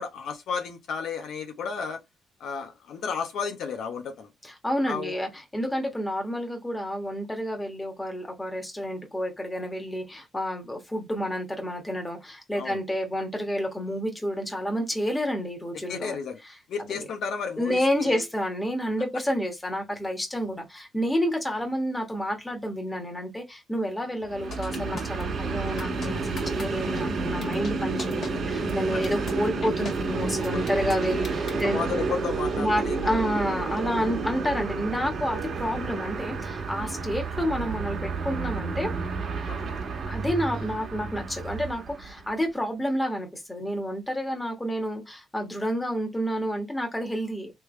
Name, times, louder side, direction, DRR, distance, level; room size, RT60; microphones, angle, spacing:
voice 1, 0.0-2.0 2.4-4.3 4.9-5.2 12.6-12.8 15.9-16.4 16.7-18.2 30.5-30.7 31.6-33.3 39.5-39.7, left 6 dB, 75° left, 0.7 m, -33 dB
voice 2, 4.6-16.2 16.9-17.1 17.6-31.9 32.6-38.9 40.1-47.5, equal, 10° left, 1.4 m, -29 dB
Train, 24.2-42.4, right 4 dB, 55° right, 1.3 m, -30 dB
sound 1, 24.5-25.2 25.8-26.1 26.4-26.6 26.9-27.0 27.4-27.7 28.0-28.3 28.7-28.8 29.0-29.3 29.6-29.9 30.4-31.6, left 4 dB, 55° left, 1.6 m, -39 dB
3.4 x 3.2 x 3.2 m
cardioid pair, 90°, 0 cm